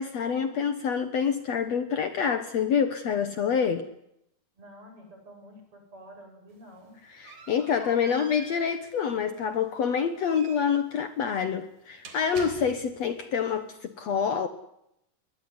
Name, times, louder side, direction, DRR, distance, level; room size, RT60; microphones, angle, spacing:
voice 1, 0.0-3.9 7.1-14.5, left 7 dB, 60° left, 10 dB, 2.3 m, -27 dB
voice 2, 4.6-7.0 7.4-7.5, equal, 40° right, 3 dB, 8.4 m, -49 dB
sound 1, 6.5-13.1, right 4 dB, 60° right, 4.9 m, -48 dB
23.0 x 20.5 x 9.7 m, 0.79 s
omnidirectional pair, 3.8 m